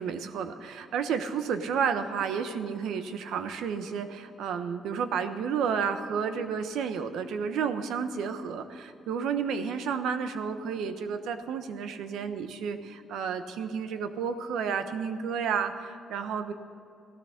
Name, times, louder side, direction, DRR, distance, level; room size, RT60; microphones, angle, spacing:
voice 1, 0.0-16.5, right 6 dB, 80° right, 9 dB, 1.1 m, -31 dB
16.0 x 13.5 x 6.6 m, 2.6 s
cardioid pair, 90°, 0 cm